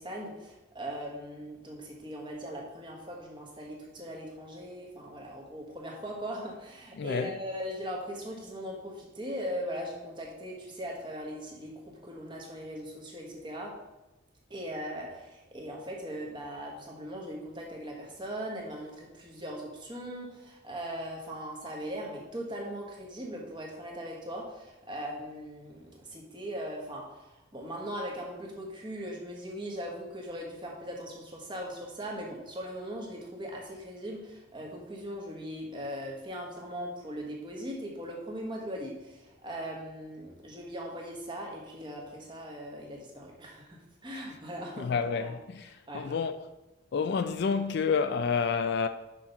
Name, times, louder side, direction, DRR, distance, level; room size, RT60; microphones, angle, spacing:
voice 1, 0.0-13.8 14.5-45.3 45.9-46.2, equal, 20° right, 1.2 m, -39 dB
voice 2, 7.0-7.3 44.8-46.5 46.9-48.9, left 5 dB, 50° left, 0.3 m, -29 dB
6.2 x 4.3 x 5.4 m
head